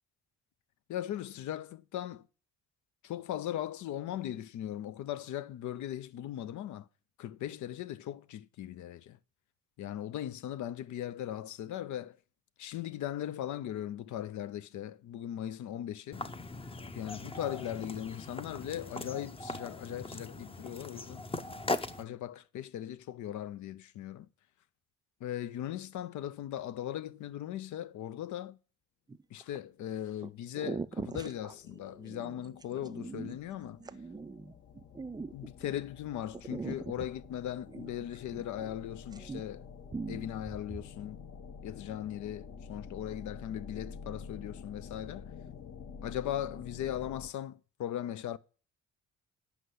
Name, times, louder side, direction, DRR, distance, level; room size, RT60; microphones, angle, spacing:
voice 1, 0.9-2.3 3.0-6.9 7.2-9.2 9.8-12.2 12.6-16.2 16.9-21.2 22.0-24.3 25.2-28.6 29.3-33.8 35.3-39.7 40.1-41.2 41.6-45.3 46.0-48.4, left 11 dB, 75° left, 0.6 m, -38 dB
sound 1, 16.1-22.0, left 2 dB, 20° left, 0.7 m, -39 dB
sound 2, 29.1-29.6 30.2-30.3 30.5-35.8 36.3-38.8 39.0-39.6 39.9-40.9, right 4 dB, 15° right, 0.4 m, -42 dB
sound 3, 30.5-47.3, left 6 dB, 50° left, 0.9 m, -49 dB
8.2 x 5.7 x 7.8 m
cardioid pair, 90°, 30 cm